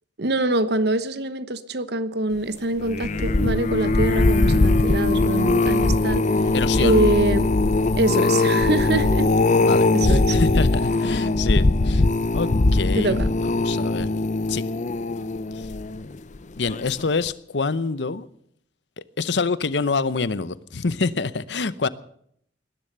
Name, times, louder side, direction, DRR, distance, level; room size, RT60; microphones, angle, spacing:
voice 1, 0.2-6.2 6.8-7.5 8.0-9.3 9.9-10.4 12.9-13.3, right 1 dB, 65° right, 13 dB, 1.1 m, -24 dB
sound 1, 2.8-16.2 16.7-17.0 17.3-17.4, left 2 dB, 45° left, 0.6 m, -20 dB
voice 2, 6.5-7.0 9.6-12.0 12.3-14.1 14.5-14.6 15.6-15.7 16.6-18.3 19.2-21.9, left 4 dB, 75° left, 16 dB, 0.8 m, -26 dB
19.5 x 11.0 x 6.8 m, 0.68 s
head